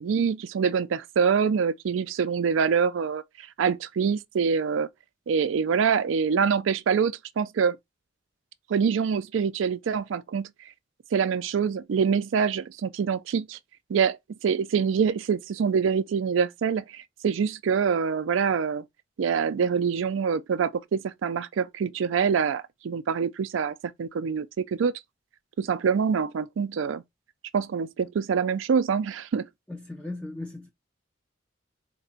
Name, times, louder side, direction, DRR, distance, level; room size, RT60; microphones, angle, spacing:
voice 1, 0.0-4.9 5.3-7.8 8.7-10.5 11.1-13.6 13.9-18.8 19.2-24.9 25.6-27.0 27.5-29.5, right 6 dB, 80° right, 0.4 m, -25 dB
voice 2, 29.7-30.7, left 2 dB, 5° left, 0.4 m, -37 dB
4.3 x 2.9 x 2.7 m
head